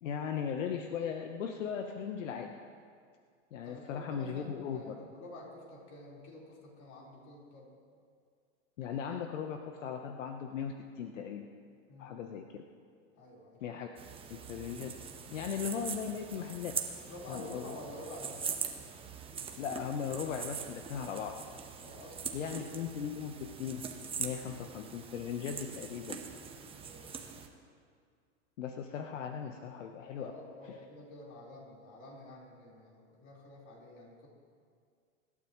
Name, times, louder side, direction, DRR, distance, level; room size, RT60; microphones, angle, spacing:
voice 1, 0.0-2.6 3.5-5.0 8.8-11.5 12.0-12.4 13.6-13.9 14.3-15.0 15.3-16.7 17.3-17.8 19.6-21.4 22.3-23.3 23.6-23.8 24.2-26.2 27.0-27.2 28.6-30.3 30.6-30.8, left 7 dB, 80° left, 5 dB, 1.1 m, -38 dB
voice 2, 3.6-7.7 11.9-12.1 13.1-13.6 17.1-18.6 21.8-22.5 26.8-27.2 30.1-34.3, left 1 dB, 45° left, -3 dB, 4.3 m, -49 dB
sound 1, 14.0-27.5, right 6 dB, 15° right, 1.1 m, -42 dB
25.0 x 12.0 x 3.1 m, 2.2 s
hypercardioid pair, 130°, 37 cm